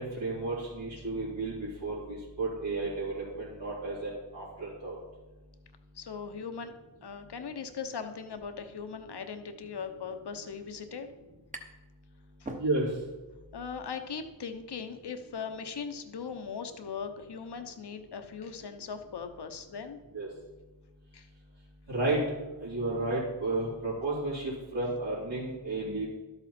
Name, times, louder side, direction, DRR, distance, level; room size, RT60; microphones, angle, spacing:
voice 1, 0.0-5.0 12.6-12.9 20.1-20.3 21.9-22.2 22.6-26.1, right 2 dB, 75° right, -11 dB, 3.5 m, -32 dB
voice 2, 5.9-6.7 7.0-11.1 12.4-12.5 13.5-20.0 21.1-21.3, left 6 dB, 60° left, 8 dB, 1.0 m, -39 dB
sound 1, 11.5-11.9 12.2-13.2, right 1 dB, 15° right, 1.0 m, -44 dB
12.0 x 7.9 x 4.4 m, 1.1 s
wide cardioid pair, 110°, 45 cm